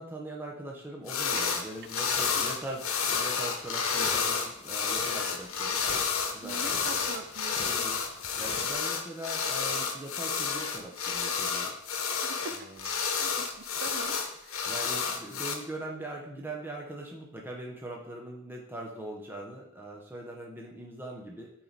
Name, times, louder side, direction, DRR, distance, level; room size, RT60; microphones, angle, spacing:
voice 1, 0.0-5.8 6.3-7.0 7.7-8.0 8.4-11.7 12.5-12.9 14.6-21.5, right 1 dB, 10° right, -1 dB, 0.9 m, -41 dB
sound 1, 1.1-1.6 1.9-15.5, left 5 dB, 80° left, 0.9 m, -30 dB
sound 2, 1.3-8.7, left 4 dB, 25° left, 0.5 m, -44 dB
voice 2, 6.4-7.6 12.2-12.5 12.8-14.6, right 4 dB, 50° right, 8 dB, 0.6 m, -43 dB
7.5 x 4.7 x 4.0 m, 0.73 s
head